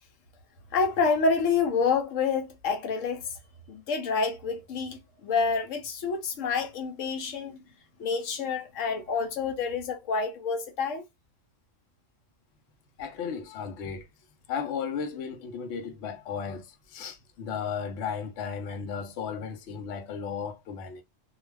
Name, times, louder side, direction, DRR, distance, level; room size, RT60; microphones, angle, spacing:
voice 1, 0.7-3.3 3.7-7.6 8.0-11.0, left 5 dB, 85° left, 1.0 m, -28 dB
voice 2, 13.0-14.1 14.5-21.0, left 6 dB, 70° left, 0.9 m, -35 dB
2.4 x 2.3 x 3.1 m
omnidirectional pair, 1.3 m